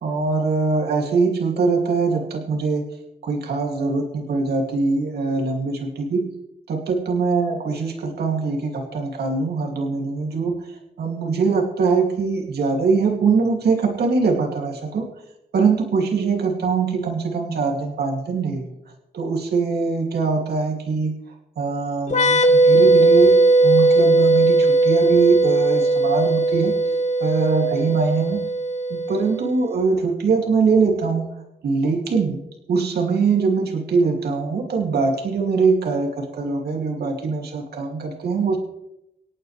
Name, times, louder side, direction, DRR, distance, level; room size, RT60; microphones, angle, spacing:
voice 1, 0.0-2.9 3.2-6.3 6.7-15.1 15.5-18.6 19.1-21.2 21.6-23.4 23.6-26.7 27.2-28.4 28.9-31.3 31.6-32.4 32.7-38.6, right 4 dB, 75° right, 1 dB, 2.7 m, -22 dB
sound 1, 22.1-29.6, right 2 dB, 45° left, 1.6 m, -18 dB
26.0 x 9.0 x 3.4 m, 0.86 s
cardioid pair, 90°, 17 cm